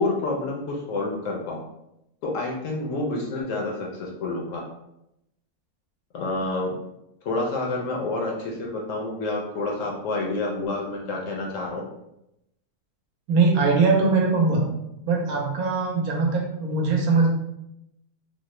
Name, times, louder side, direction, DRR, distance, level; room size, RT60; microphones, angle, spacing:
voice 1, 0.0-1.6 2.2-4.6 6.1-6.7 7.2-11.8, left 2 dB, 65° left, -1 dB, 0.8 m, -28 dB
voice 2, 13.3-14.6 15.1-17.3, right 4 dB, 75° right, 0 dB, 1.1 m, -21 dB
3.1 x 2.0 x 3.0 m, 0.84 s
omnidirectional pair, 1.6 m